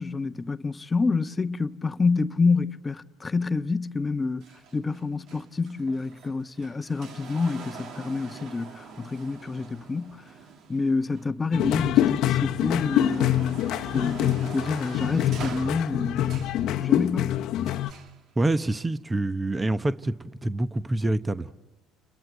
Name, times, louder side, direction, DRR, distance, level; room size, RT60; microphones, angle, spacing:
voice 1, 0.0-4.4 4.7-10.2 10.7-13.6 13.9-16.5 16.8-17.4, left 4 dB, 25° left, 0.8 m, -28 dB
sound 1, 4.4-11.6 12.1-16.7 17.6-18.2 19.1-19.2, right 5 dB, 60° right, 2.0 m, -44 dB
sound 2, 11.5-17.9, left 12 dB, 65° left, 0.8 m, -25 dB
voice 2, 18.4-21.5, right 2 dB, 20° right, 0.9 m, -26 dB
29.5 x 21.5 x 7.9 m
hypercardioid pair, 70°, 0 cm